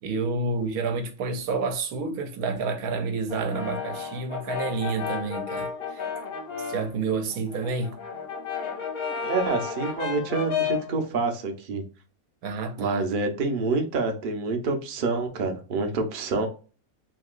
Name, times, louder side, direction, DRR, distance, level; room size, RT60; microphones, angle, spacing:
voice 1, 0.0-6.1 6.6-8.0 12.4-13.1, right 4 dB, 80° right, 1.1 m, -29 dB
Brass instrument, 3.3-6.9 7.3-10.9, left 7 dB, 50° left, 0.8 m, -32 dB
voice 2, 9.2-11.8 12.8-16.5, right 3 dB, 45° right, 0.7 m, -27 dB
3.6 x 2.8 x 2.4 m
omnidirectional pair, 1.6 m